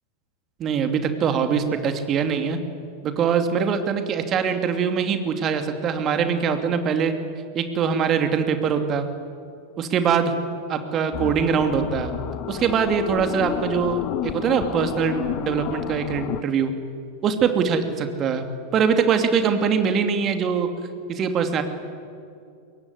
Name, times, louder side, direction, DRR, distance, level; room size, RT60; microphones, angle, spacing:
voice 1, 0.6-2.6 3.0-7.1 7.5-9.1 9.8-10.3 10.7-12.1 12.5-16.7 17.2-18.4 18.7-20.7 21.1-21.6, right 6 dB, 30° right, 7 dB, 2.7 m, -23 dB
sound 1, 11.1-16.4, left 13 dB, 40° left, 0.9 m, -31 dB
24.0 x 22.0 x 10.0 m, 2.4 s
figure-of-eight pair, 90°, 0 cm